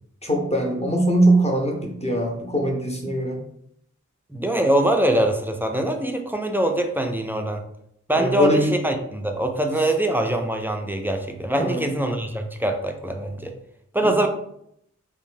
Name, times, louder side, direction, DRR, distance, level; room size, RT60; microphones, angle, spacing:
voice 1, 0.2-3.4 8.2-8.8 11.6-11.9 14.0-14.3, right 1 dB, 20° left, 0 dB, 0.6 m, -22 dB
voice 2, 4.3-7.6 8.1-13.5 13.9-14.3, right 1 dB, 5° right, 4 dB, 0.3 m, -23 dB
2.5 x 2.1 x 3.1 m, 0.74 s
wide cardioid pair, 55°, 31 cm